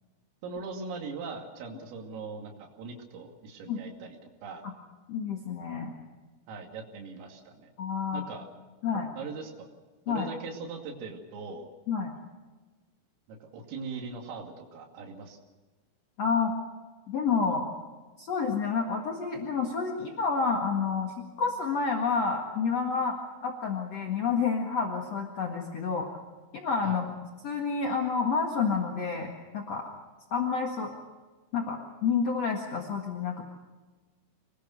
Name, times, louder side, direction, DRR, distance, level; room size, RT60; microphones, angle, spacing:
voice 1, 0.4-4.6 6.5-7.7 8.1-8.5 9.2-9.7 10.1-11.7 13.3-15.4 26.8-27.0, right 4 dB, 80° right, 1 dB, 5.2 m, -40 dB
voice 2, 5.1-5.9 7.8-8.2 8.8-9.1 10.1-10.3 11.9-12.1 16.2-16.5 17.1-17.7 18.2-21.1 21.4-23.2 23.4-26.1 26.5-27.1 27.4-29.9 30.3-30.9 31.5-33.4, left 5 dB, 55° left, 1 dB, 1.8 m, -29 dB
26.0 x 20.5 x 6.5 m, 1.3 s
omnidirectional pair, 5.9 m